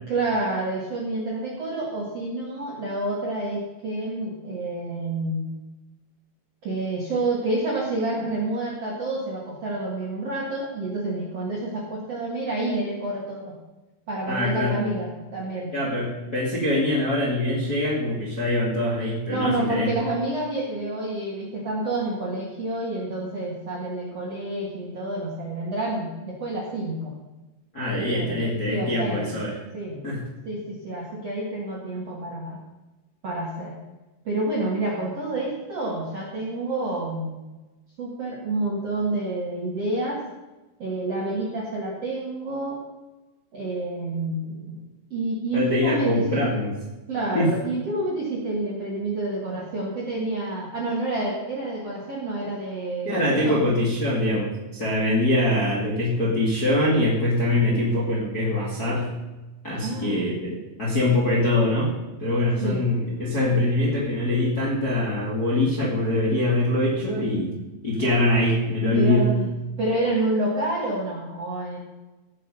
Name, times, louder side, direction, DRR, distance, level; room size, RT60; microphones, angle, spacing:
voice 1, 0.1-5.5 6.6-13.5 14.1-15.7 19.3-27.1 28.1-28.4 28.7-29.3 29.7-30.0 30.5-32.6 33.2-33.7 34.2-37.3 38.0-40.2 40.8-42.8 43.5-46.4 47.1-53.7 59.8-60.2 62.6-62.9 68.9-69.5 69.8-71.8, right 2 dB, 55° right, -4 dB, 1.8 m, -28 dB
voice 2, 14.3-14.8 15.7-20.0 27.7-29.5 30.0-30.2 45.5-46.7 47.3-47.5 53.0-59.1 59.6-67.5 67.8-69.3, left 1 dB, 35° left, -5 dB, 1.6 m, -23 dB
17.5 x 6.6 x 5.5 m, 1.1 s
omnidirectional pair, 5.8 m